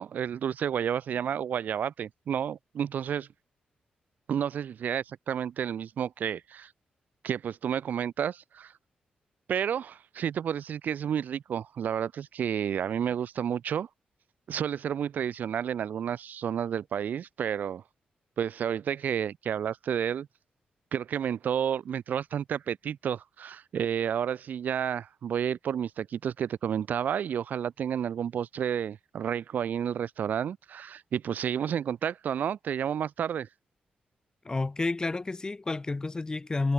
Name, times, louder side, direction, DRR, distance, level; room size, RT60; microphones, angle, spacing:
voice 1, 0.0-3.3 4.3-6.7 7.2-8.7 9.5-13.9 14.5-17.8 18.4-20.3 20.9-33.5, right 8 dB, 75° right, 4.3 m, -31 dB
voice 2, 34.4-36.7, left 3 dB, 25° left, 2.3 m, -30 dB
cardioid pair, 100°, 3 cm